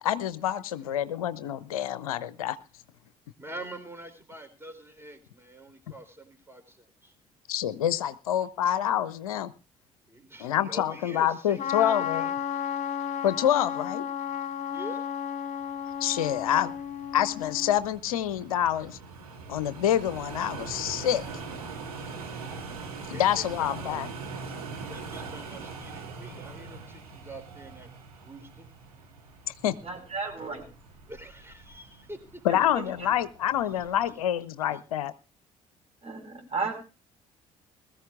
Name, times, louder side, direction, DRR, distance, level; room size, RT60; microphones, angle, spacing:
voice 1, 0.0-2.6 7.5-9.5 10.4-12.3 13.2-14.0 16.0-16.7 17.1-19.0 19.5-21.2 23.1-24.1 29.6-29.7 32.4-35.1, left 11 dB, 75° left, 17 dB, 0.5 m, -27 dB
voice 2, 3.4-7.1 10.1-12.7 14.7-15.1 23.1-24.0 24.9-27.9 28.2-28.7 31.1-32.4 33.0-33.2 33.6-33.9 34.7-34.8, right 1 dB, 15° right, 8 dB, 3.6 m, -45 dB
Trumpet, 11.6-17.8, left 8 dB, 40° left, 1.4 m, -33 dB
sound 1, 15.9-34.2, right 4 dB, 80° right, 2.1 m, -42 dB
voice 3, 29.8-30.6 32.5-33.1 36.0-36.7, right 4 dB, 35° right, 3 dB, 5.0 m, -34 dB
21.0 x 14.0 x 2.4 m, 0.32 s
figure-of-eight pair, 50°, 19 cm